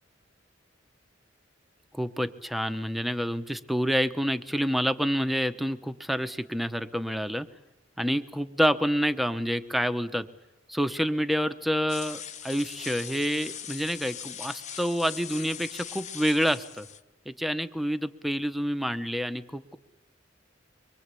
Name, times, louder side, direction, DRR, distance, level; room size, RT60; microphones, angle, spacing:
voice 1, 1.9-7.5 8.0-10.3 10.7-16.9 17.3-19.8, equal, ahead, 9 dB, 1.0 m, -28 dB
sound 1, 11.9-17.0, left 8 dB, 35° left, 0.9 m, -40 dB
24.5 x 24.0 x 8.4 m, 0.98 s
head